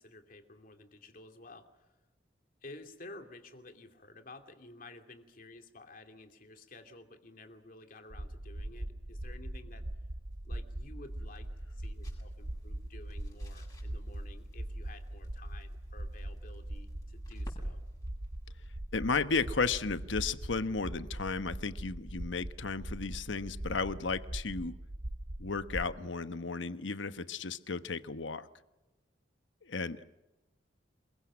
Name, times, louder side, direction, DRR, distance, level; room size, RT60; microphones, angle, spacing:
voice 1, 0.0-1.9 2.6-9.9 10.4-17.8, left 2 dB, 50° left, 5 dB, 2.7 m, -52 dB
sound 1, 8.1-26.0, right 1 dB, 55° right, 1.2 m, -41 dB
sound 2, 10.1-20.7, equal, 20° left, 7.4 m, -56 dB
voice 2, 18.9-24.7 25.4-28.5 29.6-30.0, left 4 dB, 85° left, 11 dB, 1.1 m, -34 dB
27.5 x 22.5 x 6.4 m, 1.0 s
head